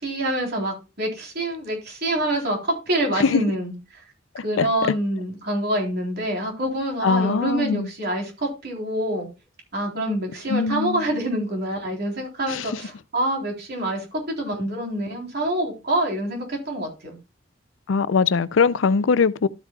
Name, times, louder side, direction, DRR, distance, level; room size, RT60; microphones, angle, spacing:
voice 1, 0.0-4.0 4.4-9.3 9.7-17.2, right 1 dB, 55° right, 3.7 m, -26 dB
voice 2, 4.3-4.7 7.0-7.9 10.5-11.0 12.5-12.6 17.9-19.5, left 5 dB, 85° left, 0.5 m, -21 dB
13.0 x 8.2 x 2.3 m
head